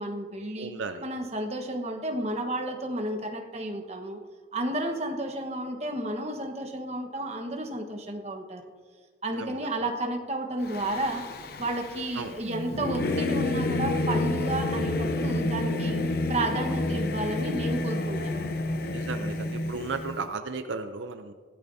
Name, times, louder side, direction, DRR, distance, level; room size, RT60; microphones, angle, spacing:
voice 1, 0.0-0.7 1.0-4.2 4.5-8.6 9.2-11.3 11.6-16.0 16.3-18.6, right 1 dB, 35° right, 3 dB, 1.3 m, -32 dB
voice 2, 0.6-1.0 9.4-9.9 12.2-12.3 18.9-21.3, right 4 dB, 75° right, 8 dB, 0.6 m, -35 dB
Singing / Musical instrument, 10.6-20.2, left 2 dB, 50° left, 0.7 m, -29 dB
17.0 x 12.0 x 2.7 m, 1.5 s
head